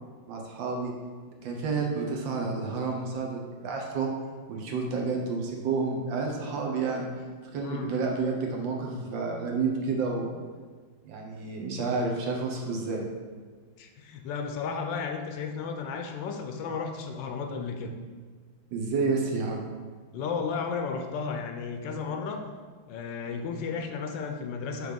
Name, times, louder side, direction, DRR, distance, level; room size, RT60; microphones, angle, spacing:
voice 1, 0.3-0.9 1.4-4.1 4.5-7.1 7.5-10.3 11.0-13.1 18.7-19.6, right 4 dB, 75° right, 0 dB, 1.6 m, -30 dB
voice 2, 7.6-7.9 13.8-17.9 20.1-22.4 22.9-24.9, left 5 dB, 75° left, 4 dB, 1.2 m, -33 dB
6.1 x 3.4 x 5.1 m, 1.5 s
omnidirectional pair, 2.1 m